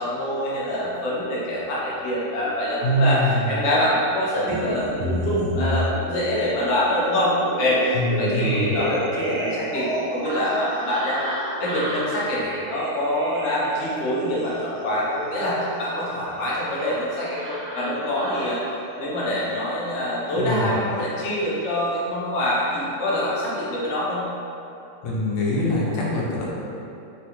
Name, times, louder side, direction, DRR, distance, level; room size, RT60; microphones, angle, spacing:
voice 1, 0.0-11.2 11.6-18.6 19.0-24.2, left 1 dB, 65° left, -7 dB, 0.7 m, -25 dB
voice 2, 2.8-3.5 7.9-8.8 20.3-20.8 25.0-26.5, left 1 dB, 85° left, -5 dB, 1.4 m, -23 dB
sound 1, 4.5-22.2 22.5-23.4, equal, 85° right, 1.3 m, -32 dB
3.5 x 2.3 x 2.8 m, 2.7 s
omnidirectional pair, 2.1 m